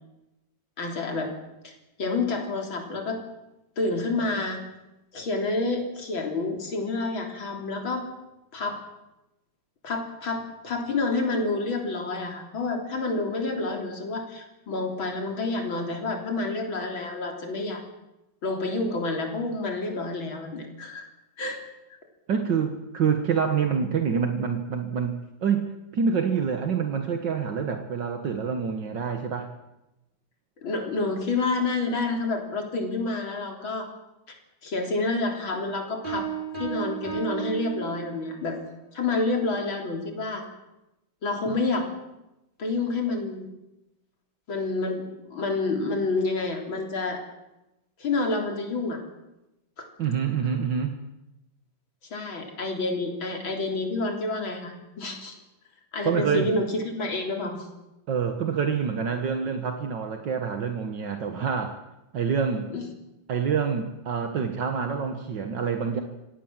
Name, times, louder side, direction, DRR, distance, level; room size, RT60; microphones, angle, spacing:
voice 1, 0.8-1.3 1.6-3.2 3.8-4.6 5.1-8.0 8.5-8.8 9.8-17.8 18.4-21.1 21.4-21.6 30.6-33.9 34.3-34.4 34.6-36.3 36.6-38.6 38.9-40.4 41.2-41.9 42.6-43.5 44.5-45.0 45.3-47.2 48.0-49.0 49.8-49.9 52.1-55.3 55.9-57.7 62.7-62.9, left 3 dB, 90° left, 3 dB, 4.3 m, -28 dB
voice 2, 22.3-29.5 50.0-51.0 56.1-56.5 58.1-61.8 62.1-62.7 63.3-66.0, right 6 dB, 65° right, 6 dB, 2.1 m, -26 dB
Piano, 36.0-38.4, right 8 dB, 25° right, 5.2 m, -33 dB
26.5 x 17.0 x 7.5 m, 0.96 s
omnidirectional pair, 2.1 m